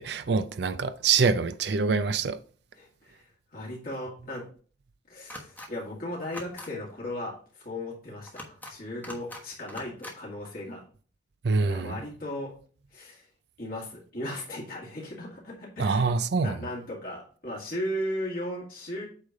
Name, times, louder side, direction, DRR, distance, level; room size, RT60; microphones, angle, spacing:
voice 1, 0.0-2.4 11.4-11.9 15.8-16.6, right 4 dB, 60° right, 0.5 m, -25 dB
voice 2, 2.7-4.5 5.1-10.8 11.6-12.5 12.9-13.3 13.6-16.1 16.4-19.1, left 1 dB, 50° left, 2.2 m, -36 dB
sound 1, 5.3-5.7 6.2-6.7 8.3-8.7 9.0-9.4 9.7-10.2, left 1 dB, 10° left, 1.2 m, -42 dB
8.5 x 3.3 x 5.3 m
head